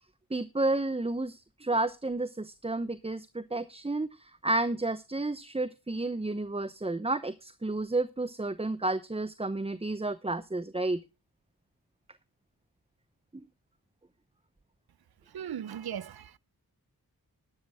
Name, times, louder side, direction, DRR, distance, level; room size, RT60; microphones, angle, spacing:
voice 1, 0.3-11.0, right 2 dB, 15° right, 0.8 m, -31 dB
voice 2, 15.3-16.4, right 9 dB, 85° right, 0.7 m, -38 dB
13.0 x 12.0 x 3.6 m
wide cardioid pair, 70°, 36 cm